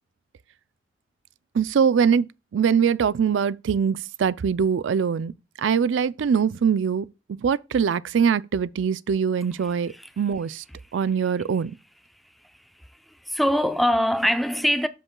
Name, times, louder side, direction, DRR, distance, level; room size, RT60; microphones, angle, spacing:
voice 1, 1.5-5.3 5.6-10.6 10.9-11.7, right 7 dB, 80° right, 0.4 m, -23 dB
voice 2, 12.4-14.9, equal, ahead, 0.5 m, -24 dB
13.0 x 5.4 x 2.2 m
head